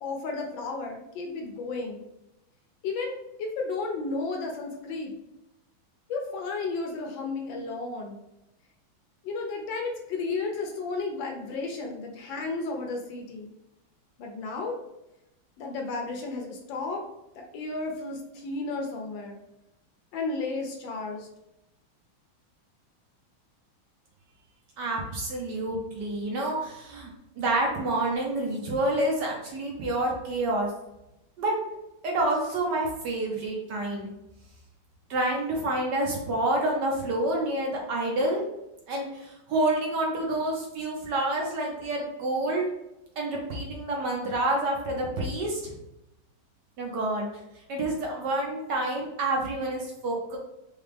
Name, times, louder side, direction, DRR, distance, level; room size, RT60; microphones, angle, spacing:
voice 1, 0.0-2.0 2.8-5.1 6.1-8.2 9.2-13.5 14.2-14.8 15.6-17.0 17.4-19.4 20.1-21.3, left 3 dB, 70° left, 2 dB, 1.3 m, -33 dB
voice 2, 24.8-27.1 27.4-30.7 31.4-31.5 32.0-34.1 35.1-38.4 38.9-42.6 43.2-45.7 46.8-47.3 47.7-50.4, right 1 dB, 65° right, -1 dB, 1.2 m, -28 dB
4.9 x 2.3 x 3.3 m, 0.90 s
omnidirectional pair, 2.3 m